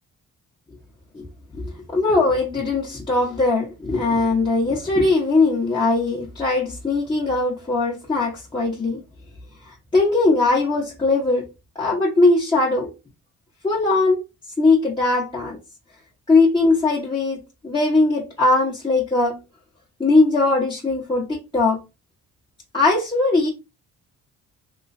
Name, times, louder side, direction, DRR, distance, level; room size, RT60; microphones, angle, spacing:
voice 1, 1.5-9.0 9.7-11.4 11.7-12.9 13.6-14.2 14.6-15.6 16.3-17.4 17.6-19.4 20.0-21.8 22.7-23.5, left 3 dB, 15° left, 1.0 m, -20 dB
3.1 x 2.9 x 2.6 m
cardioid pair, 90°, 30 cm